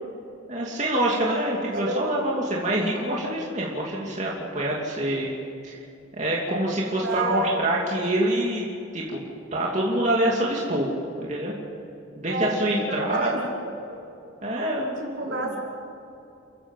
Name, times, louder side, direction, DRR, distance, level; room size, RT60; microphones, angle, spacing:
voice 1, 0.5-5.3 5.6-5.8 6.1-8.7 8.9-9.2 9.5-10.9 11.2-11.5 12.2-13.5 14.4-15.5, right 1 dB, 35° right, -3 dB, 2.8 m, -26 dB
voice 2, 7.0-7.5 12.3-12.6 12.9-13.4 13.9-14.0 15.2-15.6, right 2 dB, 70° right, -2 dB, 4.8 m, -29 dB
29.5 x 14.5 x 7.5 m, 2.6 s
head